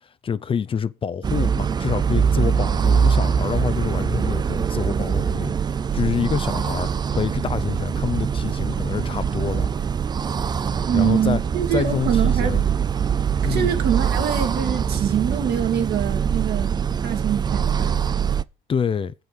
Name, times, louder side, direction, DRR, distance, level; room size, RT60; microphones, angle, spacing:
voice 1, 0.0-9.7 10.9-11.4 11.7-12.6 13.4-13.8 18.7-19.1, left 7 dB, 30° left, 0.5 m, -27 dB
sound 1, 1.2-18.4, right 7 dB, 25° right, 0.4 m, -23 dB
voice 2, 10.9-12.6 13.4-16.7 17.0-18.0, right 9 dB, 70° right, 2.3 m, -24 dB
7.8 x 5.7 x 6.8 m
cardioid pair, 110°, 17 cm